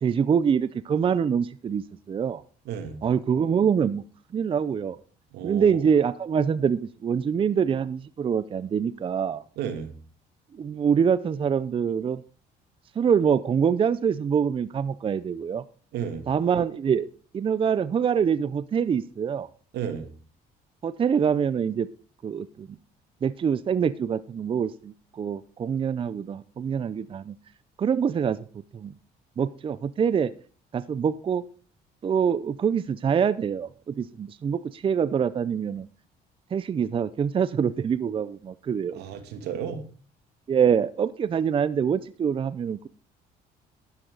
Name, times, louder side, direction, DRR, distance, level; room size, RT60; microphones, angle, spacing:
voice 1, 0.0-2.4 3.0-4.0 4.3-5.0 5.4-9.4 10.5-12.2 12.9-15.6 16.3-17.1 17.3-19.5 20.8-21.9 22.2-22.8 23.2-27.4 27.8-28.4 28.7-28.9 29.4-30.3 30.7-31.4 32.0-35.9 36.5-39.0 40.5-42.9, right 7 dB, 30° right, 15 dB, 0.5 m, -25 dB
voice 2, 2.7-3.0 5.3-5.8 9.6-9.9 15.9-16.2 19.7-20.1 38.9-39.8, right 8 dB, 80° right, 7 dB, 2.4 m, -33 dB
12.5 x 10.5 x 4.0 m, 0.38 s
cardioid pair, 110°, 17 cm